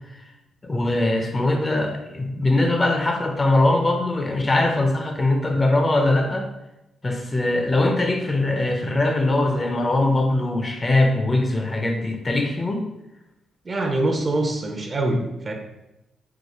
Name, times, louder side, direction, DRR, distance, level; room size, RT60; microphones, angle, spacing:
voice 1, 0.6-6.5 7.0-12.8, left 2 dB, 25° left, 4 dB, 0.6 m, -21 dB
voice 2, 13.6-15.5, right 2 dB, 35° right, 3 dB, 0.7 m, -24 dB
4.7 x 2.1 x 4.1 m, 0.91 s
cardioid pair, 85°, 0 cm